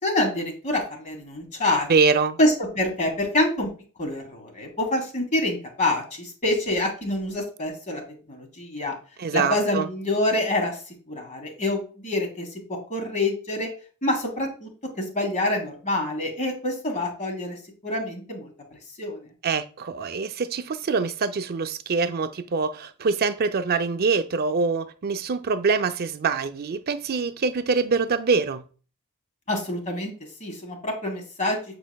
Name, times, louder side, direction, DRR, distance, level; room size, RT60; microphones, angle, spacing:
voice 1, 0.0-1.9 2.4-3.7 4.0-8.0 8.3-8.9 9.3-10.8 11.1-13.7 14.0-14.7 15.0-18.5 19.0-19.3 29.5-30.1 30.4-31.6, left 1 dB, 35° left, 1.6 m, -26 dB
voice 2, 1.9-2.4 9.2-9.9 19.4-28.6, right 4 dB, 45° right, 0.5 m, -24 dB
8.3 x 4.9 x 2.3 m
head